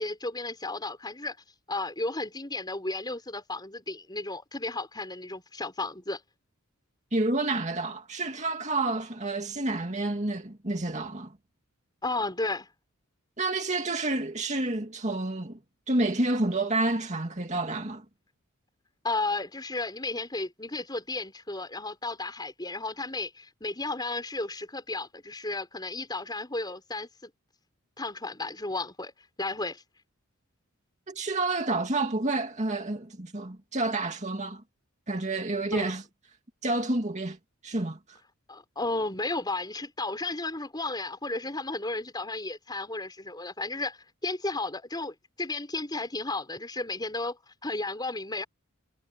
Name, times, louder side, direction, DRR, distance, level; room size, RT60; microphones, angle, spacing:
voice 1, 0.0-1.4 1.7-6.2 12.0-12.7 19.0-27.3 28.0-29.1 29.4-29.8 35.7-35.9 38.5-48.4, left 2 dB, 20° left, 5.6 m, -33 dB
voice 2, 7.1-11.3 13.4-15.6 15.9-18.0 31.1-34.6 35.1-36.0 36.6-37.4 37.6-38.2, right 2 dB, 35° right, 2.3 m, -29 dB
head